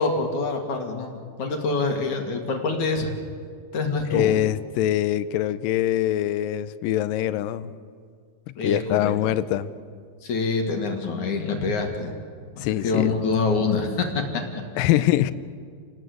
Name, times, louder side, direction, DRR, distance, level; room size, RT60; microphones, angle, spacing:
voice 1, 0.0-3.1 3.7-4.3 8.6-9.1 10.2-12.1 12.5-14.4 14.7-15.0, left 4 dB, 55° left, 3 dB, 3.2 m, -26 dB
voice 2, 4.1-7.7 8.6-9.7 12.6-13.2 14.8-15.3, left 13 dB, 75° left, 14 dB, 2.2 m, -23 dB
29.5 x 20.0 x 8.0 m, 2.1 s
omnidirectional pair, 4.5 m